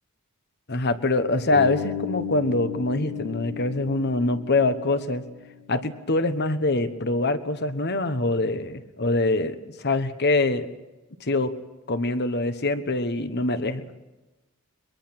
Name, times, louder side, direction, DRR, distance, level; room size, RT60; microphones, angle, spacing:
voice 1, 0.7-5.2 5.7-10.7 11.2-11.5 11.9-13.9, left 2 dB, 50° left, 10 dB, 1.2 m, -24 dB
Bass guitar, 1.5-5.6, left 7 dB, 70° left, 7.6 m, -34 dB
22.5 x 22.5 x 6.1 m, 1.1 s
head